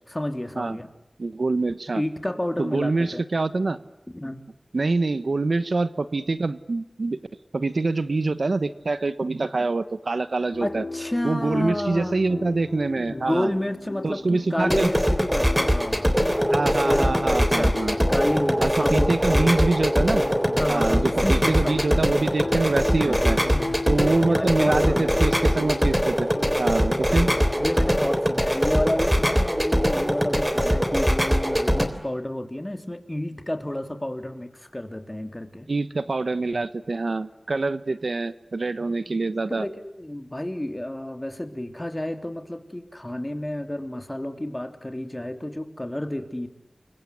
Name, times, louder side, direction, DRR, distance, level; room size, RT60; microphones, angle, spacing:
voice 1, 0.1-0.9 1.9-3.2 4.1-4.4 10.6-12.1 13.0-16.1 16.5-19.1 20.6-21.8 23.0-23.8 24.2-25.2 27.6-35.7 39.6-46.5, left 1 dB, 20° left, 7 dB, 3.2 m, -30 dB
voice 2, 1.2-2.0 2.6-3.8 4.7-7.2 7.5-10.8 11.2-13.5 14.0-14.9 16.5-18.0 18.6-20.2 20.7-23.4 23.9-26.3 26.6-27.3 35.7-39.6, right 3 dB, 80° right, 13 dB, 1.2 m, -25 dB
sound 1, 10.5-27.9, left 2 dB, 65° left, 3.0 m, -35 dB
sound 2, 14.6-31.9, equal, 5° right, 3.4 m, -22 dB
29.5 x 23.5 x 8.3 m, 0.91 s
wide cardioid pair, 60°, 0 cm